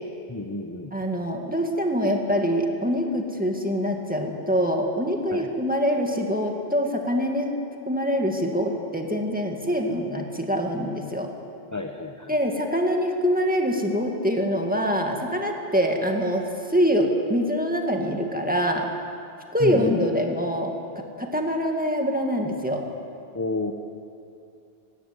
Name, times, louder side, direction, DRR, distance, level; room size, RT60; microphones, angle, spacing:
voice 1, 0.3-0.9 5.3-5.5 11.7-12.3 19.6-20.0 23.3-23.7, left 2 dB, 20° left, 5 dB, 0.8 m, -30 dB
voice 2, 0.9-7.5 7.9-11.3 12.3-18.9 19.5-20.7 21.2-22.8, equal, 10° right, 1 dB, 2.0 m, -24 dB
18.0 x 15.5 x 9.8 m, 2.6 s
omnidirectional pair, 1.1 m